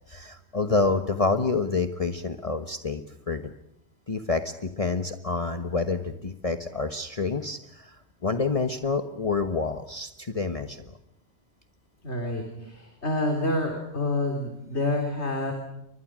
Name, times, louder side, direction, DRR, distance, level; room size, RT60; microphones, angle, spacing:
voice 1, 0.1-3.5 4.1-11.0, left 4 dB, 35° left, 7 dB, 1.2 m, -28 dB
voice 2, 12.0-15.5, left 2 dB, 80° left, 3 dB, 3.9 m, -28 dB
30.0 x 24.0 x 6.3 m, 0.82 s
omnidirectional pair, 1.1 m